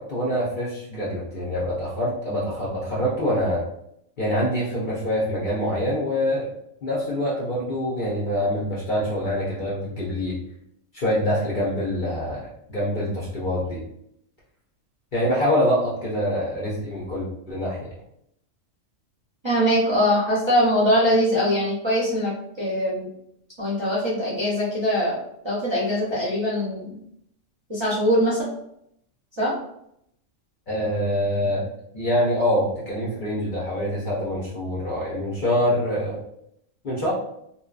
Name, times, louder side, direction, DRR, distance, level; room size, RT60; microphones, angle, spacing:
voice 1, 0.0-3.6 4.2-6.5 6.8-10.4 10.9-13.8 15.1-17.9 30.7-36.2 36.8-37.1, equal, 50° left, -6 dB, 0.6 m, -25 dB
voice 2, 19.4-23.1 23.6-25.2 25.4-26.9 27.7-28.5 29.4-29.6, equal, 30° right, -9 dB, 0.5 m, -22 dB
2.6 x 2.1 x 2.3 m, 0.75 s
omnidirectional pair, 1.4 m